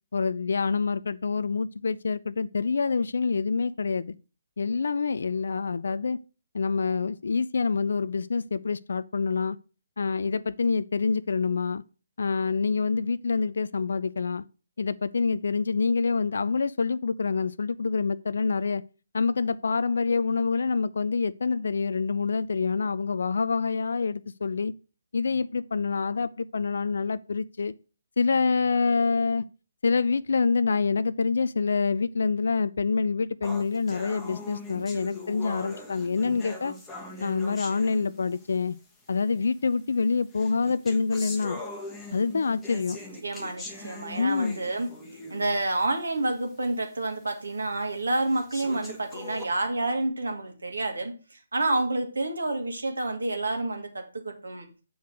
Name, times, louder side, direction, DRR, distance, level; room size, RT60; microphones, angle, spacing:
voice 1, 0.1-4.1 4.6-6.2 6.5-9.6 10.0-11.8 12.2-14.4 14.8-18.8 19.1-24.7 25.1-27.7 28.2-29.4 29.8-36.7 37.2-38.8 39.1-41.6 42.1-43.0 44.2-44.6, left 4 dB, 60° left, 0.3 m, -26 dB
sound 1, 33.4-38.6 39.4-39.5 40.3-45.6 46.0-46.1 46.6-46.7 47.4-47.5 48.3-49.4, left 2 dB, 10° left, 1.1 m, -41 dB
voice 2, 43.2-44.9 45.3-54.7, right 2 dB, 70° right, 2.2 m, -29 dB
7.9 x 4.7 x 6.2 m
figure-of-eight pair, 140°, 0 cm